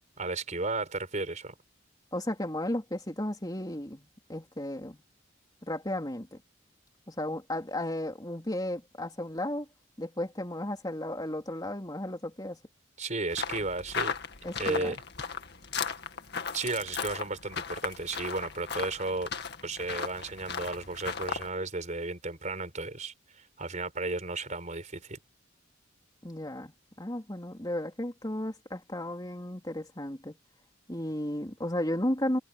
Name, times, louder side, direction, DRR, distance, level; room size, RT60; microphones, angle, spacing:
voice 1, 0.2-1.6 13.0-14.1 14.6-15.0 16.5-19.3 19.6-25.2, right 3 dB, 40° right, 4.6 m, -34 dB
voice 2, 2.1-5.0 5.6-6.4 7.1-9.7 10.0-12.6 14.4-15.0 26.2-26.7 27.0-30.3 30.9-32.4, left 1 dB, 20° left, 3.3 m, -34 dB
sound 1, 13.3-21.5, left 6 dB, 60° left, 2.1 m, -36 dB
head